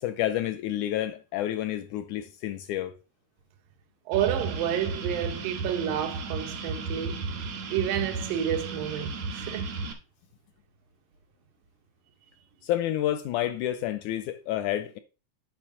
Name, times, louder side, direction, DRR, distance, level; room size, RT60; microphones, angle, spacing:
voice 1, 0.0-2.9 12.6-15.0, left 12 dB, 80° left, 1.8 m, -29 dB
sound 1, 4.1-9.9, right 3 dB, 60° right, 2.6 m, -34 dB
voice 2, 4.1-7.2 7.7-9.8, right 10 dB, 90° right, 2.8 m, -30 dB
9.4 x 3.7 x 6.1 m
omnidirectional pair, 3.9 m